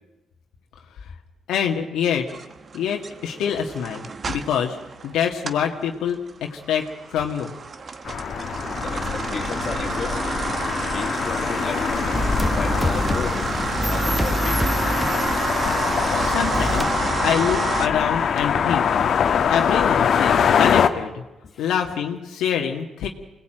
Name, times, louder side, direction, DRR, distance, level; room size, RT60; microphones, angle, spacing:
voice 1, 1.5-2.3 2.7-4.8 5.0-7.5 16.1-18.9 19.4-21.2 21.6-23.1, left 8 dB, 85° left, 2 dB, 1.8 m, -25 dB
sound 1, 2.3-5.7 6.1-17.9, right 4 dB, 40° right, 1.3 m, -29 dB
sound 2, 8.1-20.9, left 7 dB, 60° left, 1.5 m, -23 dB
voice 2, 8.8-10.4 10.9-12.1 12.5-13.4 13.9-14.8 21.4-21.8, left 5 dB, 45° left, 3 dB, 2.7 m, -34 dB
sound 3, 12.1-15.8 16.5-16.9, right 1 dB, 5° right, 1.0 m, -27 dB
24.5 x 18.5 x 9.0 m, 1.0 s
cardioid pair, 90°, 0 cm